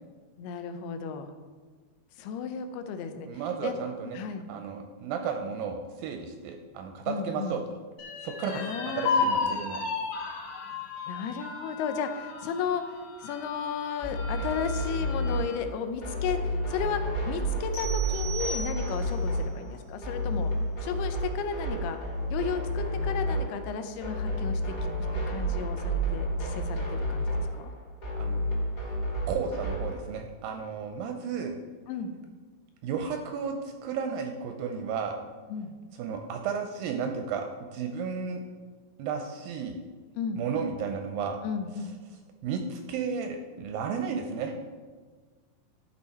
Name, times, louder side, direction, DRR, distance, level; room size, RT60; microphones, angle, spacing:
voice 1, 0.4-1.3 2.2-3.3 3.6-3.7 4.2-4.5 7.1-7.6 8.5-9.3 11.1-12.8 13.2-17.0 17.3-20.5 20.8-22.0 22.3-24.7 25.1-27.7 31.9-32.1 35.5-35.7 40.2-40.4 41.4-42.0, left 6 dB, 85° left, 8 dB, 2.7 m, -34 dB
voice 2, 3.3-4.2 4.5-7.8 8.2-9.8 28.2-28.4 29.3-31.6 32.8-35.2 36.0-37.5 37.7-38.4 39.0-39.8 40.4-41.4 42.4-44.5, right 6 dB, 85° right, 4 dB, 2.1 m, -33 dB
sound 1, 8.0-15.6 16.1-16.2 16.6-17.2, left 4 dB, 65° left, 1.8 m, -34 dB
sound 2, 14.0-30.0, equal, 30° left, 2.0 m, -31 dB
sound 3, 17.7-19.3, right 3 dB, 50° left, 1.9 m, -37 dB
12.0 x 4.5 x 4.2 m, 1.4 s
omnidirectional pair, 4.5 m